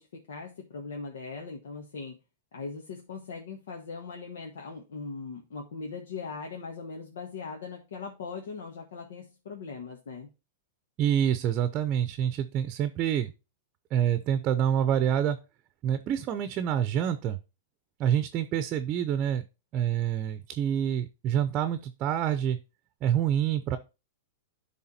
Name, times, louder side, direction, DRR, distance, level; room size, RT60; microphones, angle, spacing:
voice 1, 0.0-2.2 2.5-10.3, left 4 dB, 80° left, 0 dB, 1.5 m, -40 dB
voice 2, 11.0-13.3 13.9-15.4 15.8-17.4 18.0-19.4 19.7-22.6 23.0-23.8, right 9 dB, 35° right, 11 dB, 0.7 m, -27 dB
10.5 x 3.6 x 4.3 m, 0.28 s
hypercardioid pair, 130°, 0 cm